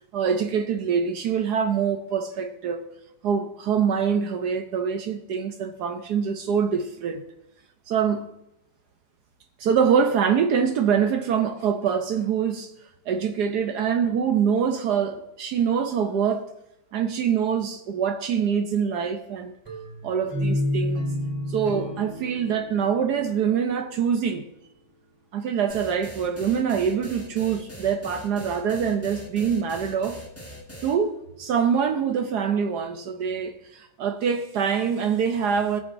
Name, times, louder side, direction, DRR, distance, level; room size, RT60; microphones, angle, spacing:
voice 1, 0.1-2.9 3.2-7.2 7.9-8.2 9.6-12.7 13.1-16.4 16.9-19.5 20.0-21.0 21.5-24.5 25.3-30.2 30.8-35.8, right 7 dB, 70° right, 1.2 m, -24 dB
sound 1, 19.6-24.5, left 1 dB, 15° right, 3.8 m, -31 dB
sound 2, 25.7-31.0, left 1 dB, 10° left, 1.5 m, -41 dB
17.0 x 8.5 x 2.6 m
omnidirectional pair, 1.9 m